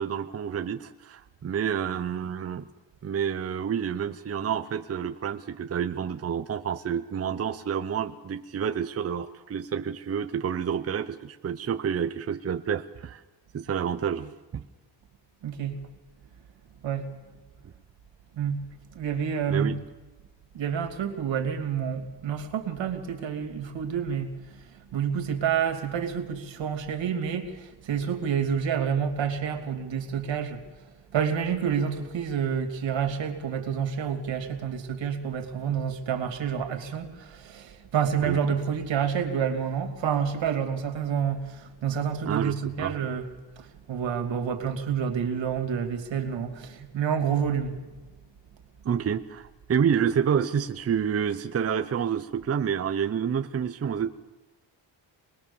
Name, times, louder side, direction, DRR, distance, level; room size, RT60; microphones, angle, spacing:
voice 1, 0.0-2.7 3.0-13.2 13.5-14.6 19.5-19.8 38.2-38.4 42.2-42.9 48.8-54.1, right 7 dB, 35° right, 6 dB, 0.7 m, -29 dB
voice 2, 15.4-15.8 16.8-17.2 18.4-18.6 18.9-19.8 20.5-24.5 24.9-30.6 31.1-43.3 43.6-47.8, right 7 dB, 75° right, 6 dB, 2.9 m, -28 dB
26.0 x 20.5 x 7.1 m, 1.2 s
wide cardioid pair, 170°, 45 cm